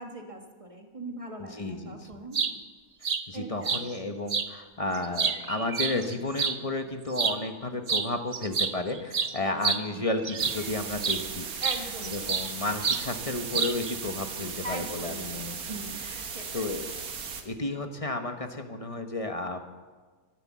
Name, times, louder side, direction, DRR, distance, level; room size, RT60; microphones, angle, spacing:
voice 1, 0.0-2.6 3.3-3.8 9.4-9.5 9.9-10.0 11.6-12.3 14.6-15.4 15.7-16.7, right 2 dB, 25° right, 3 dB, 1.5 m, -40 dB
voice 2, 1.4-2.1 3.0-11.5 12.1-15.8 16.1-16.2 16.5-16.9 17.4-19.6, left 2 dB, 25° left, 6 dB, 0.9 m, -32 dB
sound 1, 2.1-2.5 3.0-3.2 3.6-3.8 4.3-4.5 4.9-6.6 7.1-7.4 7.9-8.1 8.3-10.7 11.0-11.2 11.6-12.5 12.8-13.0 13.5-13.9, right 6 dB, 45° right, 0.5 m, -28 dB
sound 2, 10.4-17.4, right 5 dB, 80° right, 1.8 m, -37 dB
14.0 x 11.5 x 7.4 m, 1.4 s
omnidirectional pair, 1.6 m